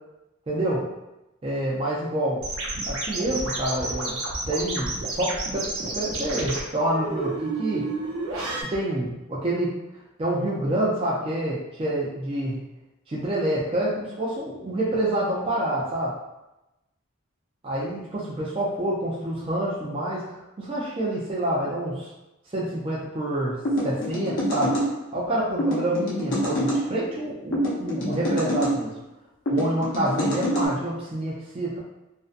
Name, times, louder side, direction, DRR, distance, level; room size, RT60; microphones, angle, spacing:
voice 1, 0.5-0.9 1.4-2.4 2.9-4.2 4.5-5.7 5.9-7.9 8.7-9.7 10.2-12.6 13.1-16.1 17.6-22.1 22.5-24.7 25.1-28.9 29.5-31.8, right 1 dB, 25° right, -6 dB, 0.4 m, -27 dB
sound 1, 2.4-8.6, right 2 dB, 70° right, 0.6 m, -30 dB
sound 2, 23.6-24.9 25.6-26.8 27.5-28.8 29.5-30.7, equal, 55° left, 0.7 m, -25 dB
2.5 x 2.1 x 2.4 m, 0.95 s
head